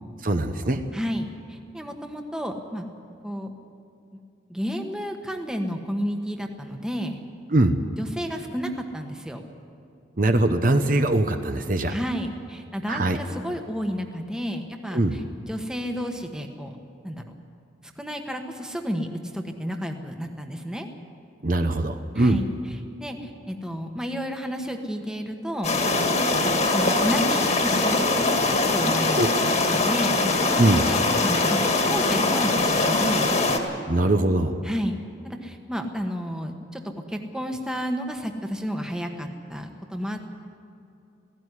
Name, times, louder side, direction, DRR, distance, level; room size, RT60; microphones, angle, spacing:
voice 1, 0.2-0.8 7.5-7.8 10.2-11.9 12.9-13.2 14.9-15.2 21.4-22.4 29.2-29.3 30.6-30.8 33.9-34.5, right 2 dB, 45° right, 7 dB, 0.8 m, -21 dB
voice 2, 0.9-2.8 3.2-3.5 4.5-7.2 8.0-9.4 11.9-15.2 15.5-16.7 17.0-17.2 18.0-19.1 19.3-20.9 22.1-22.5 23.0-25.8 26.7-28.0 28.5-30.2 30.9-33.4 34.6-35.0 35.2-36.8 37.1-40.4, equal, 5° right, 4 dB, 1.3 m, -31 dB
sound 1, 25.6-33.6, left 2 dB, 35° left, 1.8 m, -22 dB
17.0 x 16.5 x 9.8 m, 2.6 s
head